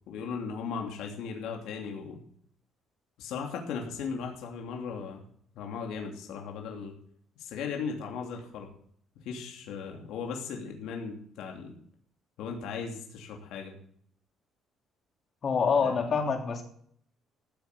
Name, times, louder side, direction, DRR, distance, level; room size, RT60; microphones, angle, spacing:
voice 1, 0.1-2.2 3.2-5.2 5.5-6.9 7.4-8.7 9.2-11.7 12.4-13.8 15.8-15.9, left 6 dB, 85° left, 1 dB, 3.0 m, -37 dB
voice 2, 15.4-16.6, left 5 dB, 40° left, 3 dB, 3.2 m, -26 dB
15.0 x 7.9 x 6.9 m, 0.62 s
cardioid pair, 145°, 0 cm